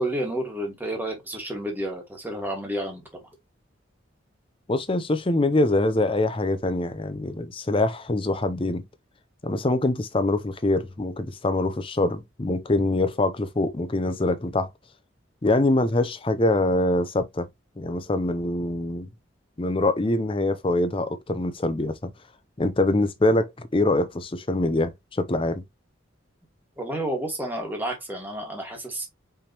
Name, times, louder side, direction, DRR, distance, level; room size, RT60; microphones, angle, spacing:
voice 1, 0.0-3.0 26.8-29.0, right 1 dB, 10° right, 1.6 m, -30 dB
voice 2, 4.7-8.8 9.4-14.7 15.4-17.5 17.8-19.1 19.6-22.1 22.6-25.6, left 2 dB, 25° left, 0.6 m, -24 dB
5.5 x 3.4 x 2.8 m
head